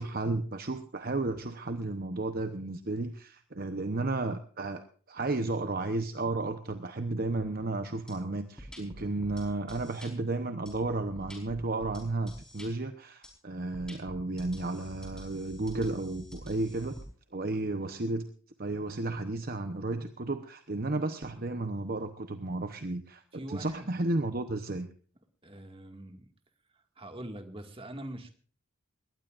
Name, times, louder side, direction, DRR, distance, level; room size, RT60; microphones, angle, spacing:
voice 1, 0.0-17.0 17.3-18.3 18.6-24.9, right 2 dB, 45° right, 8 dB, 0.9 m, -33 dB
sound 1, 8.1-8.2 8.6-10.1 10.7-12.7 13.2-13.3 13.7-17.0, equal, 5° left, 4.6 m, -47 dB
voice 2, 23.3-23.9 25.4-26.3 26.7-28.3, right 1 dB, 25° right, 5 dB, 2.0 m, -43 dB
21.0 x 18.5 x 2.5 m, 0.43 s
head